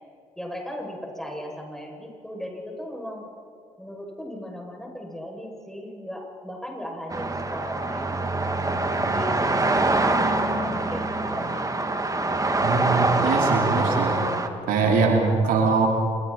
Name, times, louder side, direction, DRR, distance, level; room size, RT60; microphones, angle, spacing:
voice 1, 0.4-3.3 3.8-11.7, equal, 5° left, 0 dB, 7.2 m, -37 dB
sound 1, 7.1-14.5, right 2 dB, 25° right, 2.1 m, -24 dB
voice 2, 12.6-15.9, right 4 dB, 75° right, 1 dB, 2.8 m, -23 dB
27.0 x 22.5 x 4.4 m, 2.5 s
hypercardioid pair, 50°, 15 cm